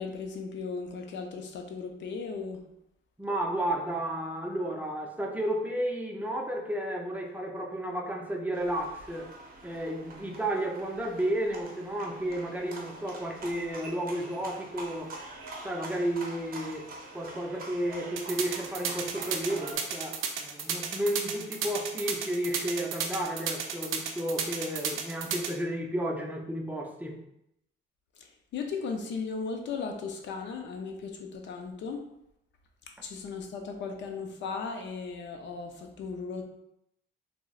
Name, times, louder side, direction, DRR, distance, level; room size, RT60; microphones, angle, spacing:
voice 1, 0.0-2.6 28.2-32.1 33.0-36.5, left 5 dB, 65° left, 3 dB, 0.5 m, -36 dB
voice 2, 3.2-9.3 9.6-15.1 15.6-16.9 17.1-27.2, right 1 dB, 10° right, 1 dB, 0.5 m, -32 dB
sound 1, 8.5-19.7, right 2 dB, 50° right, 0.6 m, -45 dB
sound 2, 18.2-25.5, right 7 dB, 85° right, 0.4 m, -32 dB
3.7 x 2.0 x 2.3 m, 0.80 s
cardioid pair, 90°, 20 cm